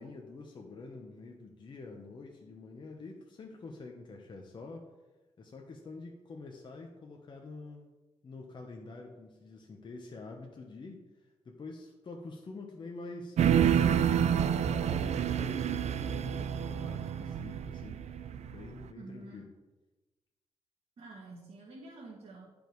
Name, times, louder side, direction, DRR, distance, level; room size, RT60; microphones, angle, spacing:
voice 1, 0.0-4.9 5.4-7.9 8.2-11.0 11.4-18.0 18.5-19.5, left 3 dB, 45° left, 1 dB, 0.9 m, -47 dB
sound 1, 13.4-18.8, right 9 dB, 75° right, 0.5 m, -28 dB
voice 2, 19.0-19.5 21.0-22.5, right 2 dB, 60° right, -4 dB, 1.9 m, -48 dB
12.0 x 5.3 x 4.6 m, 1.1 s
wide cardioid pair, 145°, 11 cm